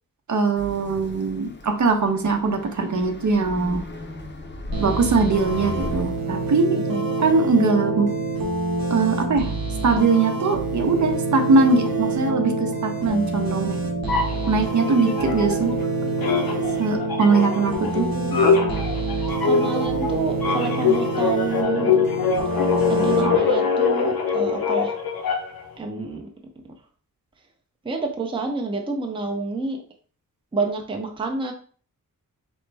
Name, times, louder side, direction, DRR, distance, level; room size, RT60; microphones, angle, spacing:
voice 1, 0.3-3.8 4.8-6.8 7.2-8.1 8.9-9.5 9.8-13.8 14.5-15.8 16.8-18.1, right 4 dB, 55° right, 5 dB, 0.7 m, -21 dB
sound 1, 0.6-6.1, left 2 dB, 30° left, 0.6 m, -36 dB
sound 2, 4.7-23.4, right 3 dB, 90° right, 1.0 m, -26 dB
sound 3, 14.1-15.9 16.2-25.7, left 5 dB, 80° left, 0.7 m, -23 dB
voice 2, 17.9-18.4 19.5-21.9 22.9-24.9 25.8-26.2 27.9-29.8 30.5-31.5, right 3 dB, 15° right, 3 dB, 0.5 m, -28 dB
4.3 x 3.1 x 3.2 m, 0.43 s
wide cardioid pair, 155°, 35 cm